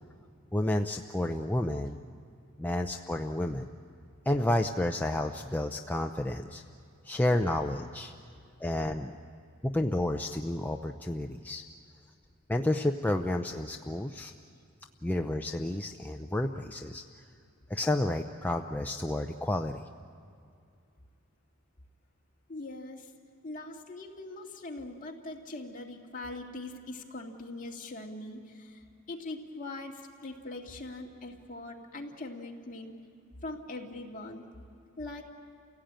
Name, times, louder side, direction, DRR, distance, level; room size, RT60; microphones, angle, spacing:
voice 1, 0.5-2.0 2.6-3.7 4.3-6.6 7.0-8.1 8.6-9.2 9.6-11.7 12.5-14.3 15.0-17.0 17.7-19.8, left 1 dB, 10° left, 3 dB, 0.5 m, -30 dB
voice 2, 22.5-23.1 23.4-32.9 33.4-34.5 35.0-35.3, left 2 dB, 40° left, 0 dB, 2.2 m, -42 dB
29.0 x 16.5 x 8.9 m, 2.4 s
head